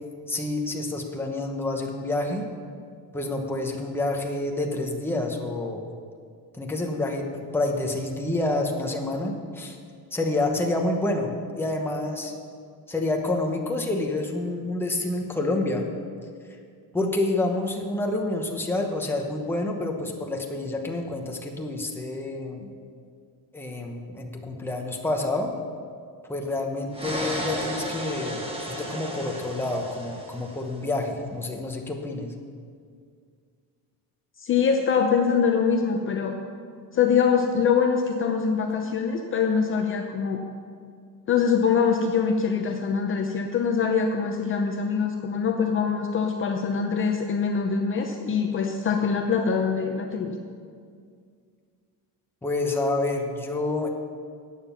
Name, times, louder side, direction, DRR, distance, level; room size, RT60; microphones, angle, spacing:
voice 1, 0.3-2.4 3.1-5.8 6.5-7.3 7.5-9.8 10.1-11.3 11.6-12.3 12.9-15.8 16.9-22.7 23.5-25.5 26.3-32.3 52.4-53.9, left 2 dB, 5° left, 1 dB, 1.0 m, -28 dB
sound 1, 26.9-30.8, equal, 15° right, 1.3 m, -33 dB
voice 2, 34.4-36.4 36.9-40.4 41.3-50.3, left 6 dB, 35° left, 3 dB, 0.7 m, -24 dB
14.5 x 9.1 x 5.7 m, 2.2 s
cardioid pair, 175°, 36 cm